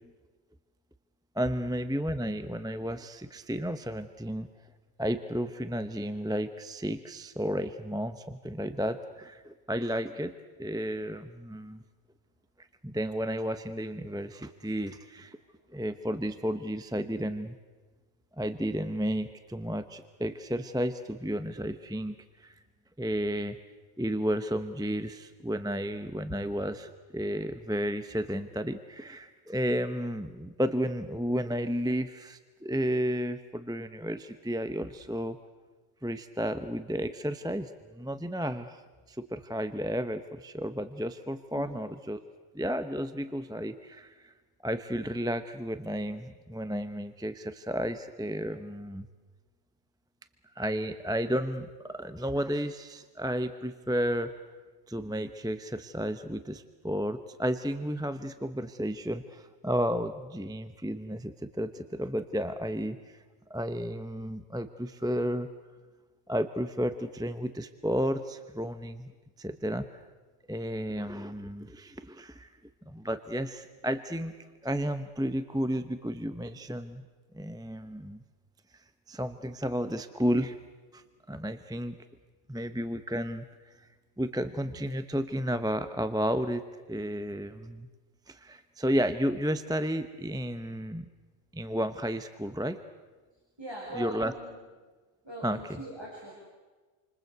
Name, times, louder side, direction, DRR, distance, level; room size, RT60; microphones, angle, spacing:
voice 1, 1.3-4.5 5.0-10.3 10.6-11.8 12.8-15.4 15.7-17.6 18.4-22.1 22.4-22.5 23.0-23.6 24.0-35.4 36.0-38.8 39.1-42.2 42.5-44.3 44.6-49.1 50.6-54.3 54.9-63.2 63.5-65.5 66.3-69.1 69.4-70.0 70.5-72.5 72.9-74.3 74.6-77.0 77.3-78.2 79.1-80.6 80.9-81.0 81.3-82.0 82.5-83.4 83.8-83.9 84.2-86.6 86.9-87.9 88.3-91.1 91.5-92.8 93.9-94.3 95.4-95.8, equal, 5° right, 10 dB, 0.8 m, -32 dB
voice 2, 93.6-94.6 95.2-96.3, equal, 25° right, -3 dB, 5.9 m, -41 dB
29.0 x 25.0 x 8.0 m, 1.3 s
omnidirectional pair, 1.1 m